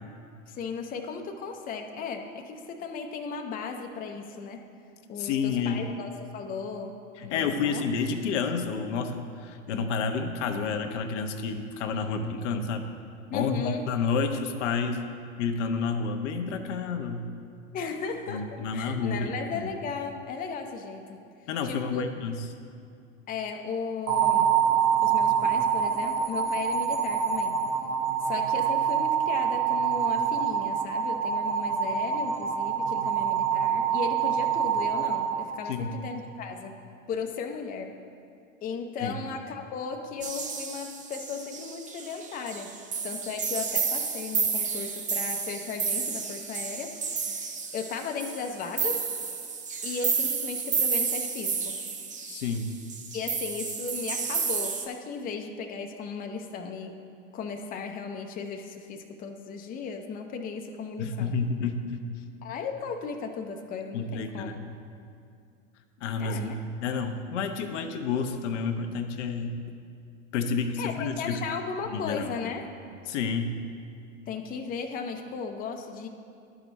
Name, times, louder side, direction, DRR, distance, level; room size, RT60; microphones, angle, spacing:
voice 1, 0.5-4.7 5.1-6.9 7.2-7.8 13.3-13.8 17.7-21.2 21.6-22.1 23.3-24.6 25.0-27.6 28.2-36.8 37.1-37.9 38.6-42.8 43.0-49.0 49.8-51.8 53.1-57.0 57.3-61.4 62.4-64.5 66.2-66.6 70.8-72.6 74.3-76.1, left 5 dB, 20° left, 4 dB, 0.6 m, -36 dB
voice 2, 5.2-5.8 7.2-12.8 13.3-15.0 15.4-17.3 18.3-19.3 19.6-19.7 21.5-22.5 35.7-36.0 39.0-39.1 52.2-52.7 61.0-62.1 63.9-64.6 66.0-69.6 70.3-71.4 71.9-72.3 73.1-73.6, left 5 dB, 65° left, 5 dB, 0.8 m, -30 dB
sound 1, 24.1-36.2, right 8 dB, 80° right, 1.2 m, -26 dB
sound 2, 40.2-54.9, right 5 dB, 20° right, 0.6 m, -31 dB
11.5 x 4.9 x 4.0 m, 2.4 s
hypercardioid pair, 95°, 39 cm